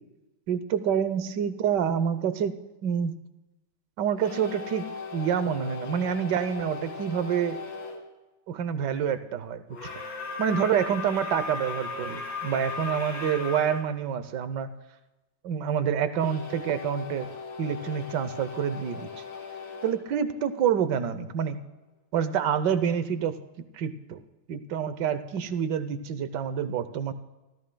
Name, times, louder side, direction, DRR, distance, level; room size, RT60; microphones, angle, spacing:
voice 1, 0.5-2.5 2.8-3.2 4.0-7.6 8.5-9.9 10.4-14.7 15.4-17.3 17.6-19.1 19.8-21.6 22.1-23.4 23.7-24.2 24.5-27.1, right 8 dB, 65° right, 12 dB, 1.4 m, -27 dB
sound 1, 4.1-8.0 9.7-13.8 16.2-21.0, left 4 dB, 65° left, 2.5 m, -38 dB
25.5 x 14.5 x 2.3 m, 1.1 s
omnidirectional pair, 2.2 m